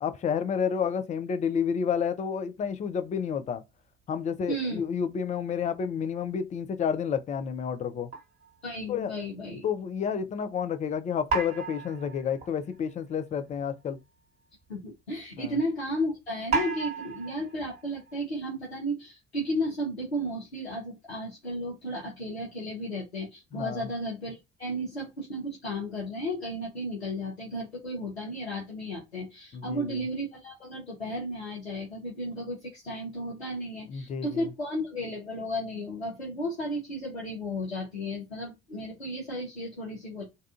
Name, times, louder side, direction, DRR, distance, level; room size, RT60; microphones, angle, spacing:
voice 1, 0.0-3.6 4.1-8.1 8.9-9.1 9.6-14.0 15.4-15.6 23.5-23.9 29.5-30.1 33.9-34.5, left 7 dB, 25° left, 0.4 m, -30 dB
voice 2, 4.5-4.8 8.6-9.6 14.7-40.2, equal, 90° left, 0.7 m, -34 dB
sound 1, 8.1-8.6 9.2-9.3 11.3-13.0 13.4-13.5 13.8-13.9 14.6-14.7 16.5-18.2, right 4 dB, 20° right, 1.2 m, -34 dB
2.6 x 2.3 x 2.3 m
figure-of-eight pair, 55°, 31 cm